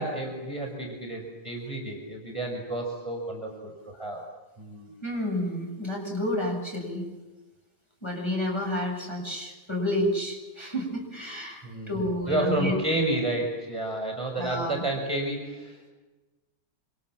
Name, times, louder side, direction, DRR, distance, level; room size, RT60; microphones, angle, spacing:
voice 1, 0.0-4.3 4.6-4.9 11.6-15.9, right 2 dB, 15° right, 1 dB, 5.9 m, -31 dB
voice 2, 5.0-7.0 8.0-12.7 14.3-14.8, left 1 dB, 15° left, -1 dB, 7.9 m, -30 dB
29.0 x 26.5 x 7.5 m, 1.2 s
omnidirectional pair, 1.8 m